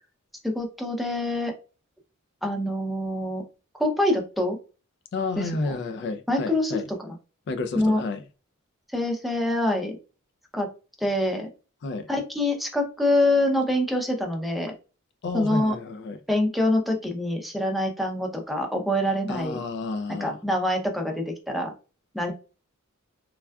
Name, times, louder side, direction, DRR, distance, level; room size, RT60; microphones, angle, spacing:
voice 1, 0.4-1.5 2.4-3.4 3.8-4.6 5.4-5.7 6.3-7.1 7.8-8.0 8.9-10.0 10.5-10.7 11.0-11.5 12.1-14.7 15.3-15.8 16.3-19.6 20.2-21.7 22.1-22.3, left 1 dB, ahead, 0.5 m, -25 dB
voice 2, 5.1-6.8 7.5-8.2 11.8-12.1 15.2-16.2 19.3-20.4, left 3 dB, 55° left, 0.3 m, -31 dB
3.5 x 2.2 x 2.2 m
head